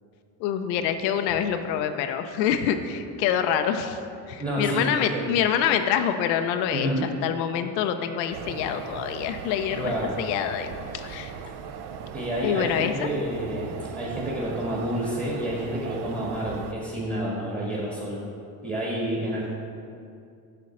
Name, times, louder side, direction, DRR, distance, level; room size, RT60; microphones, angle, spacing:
voice 1, 0.4-4.0 4.3-6.9 7.2-11.3 12.4-13.1, left 9 dB, 85° left, 7 dB, 0.6 m, -26 dB
voice 2, 4.4-5.3 6.7-7.1 9.8-10.2 11.0-11.1 12.1-18.2 18.6-19.5, right 1 dB, 15° right, -4 dB, 1.6 m, -29 dB
sound 1, 8.3-16.7, right 7 dB, 55° right, 0.6 m, -38 dB
6.6 x 6.3 x 4.1 m, 2.5 s
hypercardioid pair, 65°, 50 cm